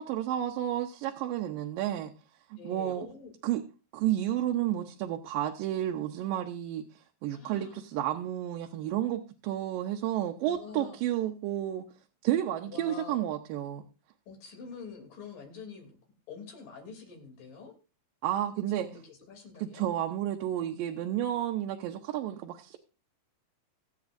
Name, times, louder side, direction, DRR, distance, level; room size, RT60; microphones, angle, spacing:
voice 1, 0.0-2.1 2.5-3.1 3.4-3.6 3.9-11.9 12.2-13.8 18.2-18.9 19.6-22.8, right 12 dB, 90° right, 3 dB, 2.5 m, -31 dB
voice 2, 2.6-3.3 7.3-7.8 10.4-11.0 12.6-13.2 14.3-15.9 16.3-17.7 18.8-19.9, left 5 dB, 80° left, 3 dB, 4.6 m, -46 dB
23.5 x 8.2 x 2.6 m, 0.33 s
omnidirectional pair, 3.9 m